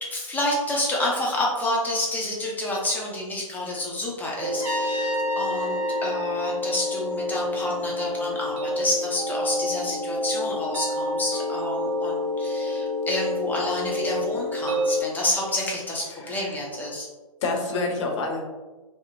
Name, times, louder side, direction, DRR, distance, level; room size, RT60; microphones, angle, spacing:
voice 1, 0.0-17.1, left 1 dB, 10° left, -3 dB, 0.6 m, -29 dB
sound 1, 4.4-15.0, left 1 dB, 55° right, 0.6 m, -28 dB
Trumpet, 4.6-7.5, right 1 dB, 15° right, 0.9 m, -32 dB
voice 2, 16.1-16.6 17.4-18.4, left 3 dB, 55° left, 1 dB, 0.7 m, -28 dB
2.7 x 2.1 x 2.6 m, 1.2 s
hypercardioid pair, 120°, 18 cm